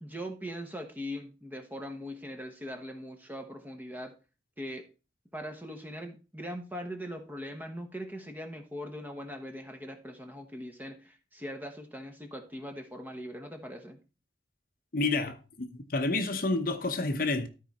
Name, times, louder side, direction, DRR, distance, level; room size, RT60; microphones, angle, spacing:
voice 1, 0.0-4.1 4.6-4.9 5.3-14.0, equal, 10° right, 1.0 m, -41 dB
voice 2, 14.9-17.5, left 3 dB, 50° left, 0.8 m, -29 dB
13.0 x 4.7 x 4.2 m
head